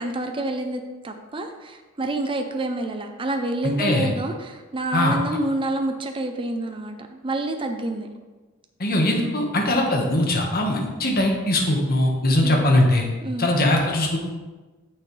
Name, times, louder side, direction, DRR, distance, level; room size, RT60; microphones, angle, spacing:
voice 1, 0.0-8.1 12.4-12.6 13.2-13.5, right 2 dB, 25° right, 5 dB, 0.5 m, -28 dB
voice 2, 3.6-4.1 4.9-5.2 8.8-13.1 13.4-14.2, left 1 dB, 45° left, 1 dB, 1.4 m, -21 dB
9.2 x 6.7 x 3.3 m, 1.2 s
head